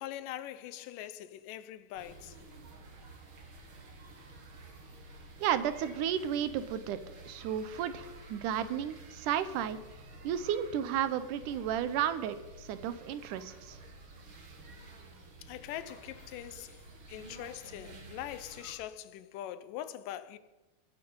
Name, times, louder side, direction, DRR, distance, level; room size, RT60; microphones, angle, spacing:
voice 1, 0.0-2.4 15.4-20.4, left 12 dB, 80° left, 2.3 m, -43 dB
sound 1, 2.0-18.7, right 2 dB, 45° right, 2.2 m, -51 dB
voice 2, 5.4-7.0 7.3-9.8 10.2-13.8, right 9 dB, 75° right, 2.2 m, -33 dB
22.5 x 8.0 x 5.4 m
omnidirectional pair, 3.9 m